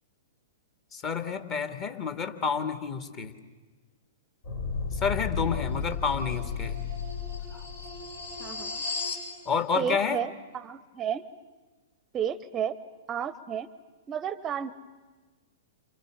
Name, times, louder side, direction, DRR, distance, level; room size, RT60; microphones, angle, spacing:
voice 1, 0.9-3.3 5.0-6.8 9.5-10.2, left 6 dB, 35° left, 7 dB, 2.3 m, -29 dB
sound 1, 4.4-9.3, left 5 dB, 70° left, 7.2 m, -33 dB
voice 2, 8.4-8.8 9.8-11.2 12.1-12.8 13.1-13.7 14.1-14.7, right 8 dB, 25° right, 17 dB, 0.8 m, -32 dB
29.5 x 28.0 x 6.6 m, 1.3 s
figure-of-eight pair, 110°, 0 cm